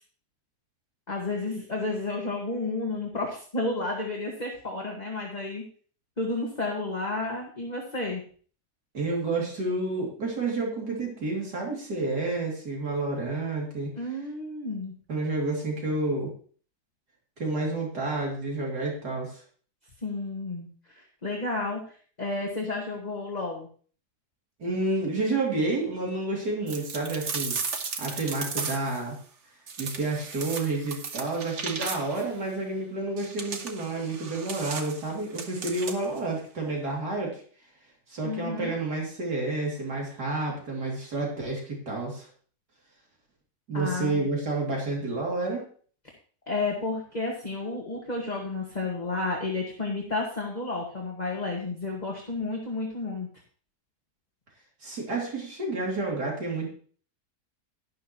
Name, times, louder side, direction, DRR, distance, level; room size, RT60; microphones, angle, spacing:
voice 1, 1.1-5.6 6.2-8.2 14.0-14.9 20.0-23.7 38.2-38.8 43.7-44.3 46.5-53.3, left 3 dB, 25° left, -1 dB, 1.8 m, -31 dB
voice 2, 8.9-13.9 15.1-16.3 17.4-19.4 24.6-27.6 28.0-29.2 29.8-37.4 38.1-42.3 43.7-45.6 54.8-56.7, right 2 dB, 80° right, -2 dB, 3.3 m, -30 dB
sound 1, 26.7-29.0 29.7-32.3 33.2-36.2, right 5 dB, 50° right, 1.3 m, -35 dB
12.0 x 11.5 x 3.0 m, 0.44 s
omnidirectional pair, 1.7 m